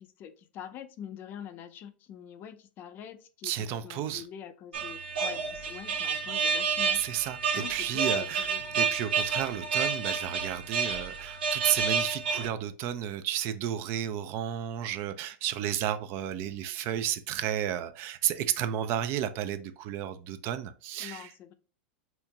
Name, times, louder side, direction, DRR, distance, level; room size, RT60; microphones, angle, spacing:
voice 1, 0.0-7.0 7.5-8.1 8.5-8.6 21.0-21.5, left 9 dB, 40° left, 0.5 m, -45 dB
voice 2, 3.4-4.3 6.9-21.3, right 10 dB, 45° right, 0.4 m, -32 dB
sound 1, 4.7-12.5, right 5 dB, 80° right, 0.8 m, -30 dB
4.4 x 2.8 x 2.2 m
hypercardioid pair, 120°, 5 cm